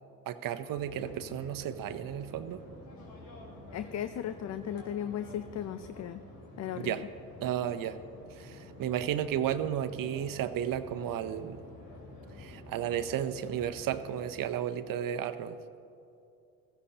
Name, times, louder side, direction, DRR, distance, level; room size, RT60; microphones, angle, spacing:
voice 1, 0.3-2.6 6.7-7.0 7.4-8.0 8.3-11.6 12.4-15.6, right 10 dB, 60° right, 11 dB, 0.7 m, -33 dB
sound 1, 0.7-14.4, left 1 dB, 65° left, 2.7 m, -49 dB
voice 2, 3.7-6.2 6.6-7.1, left 10 dB, 45° left, 11 dB, 0.5 m, -36 dB
15.5 x 14.5 x 2.9 m, 2.6 s
supercardioid pair, 55°, 37 cm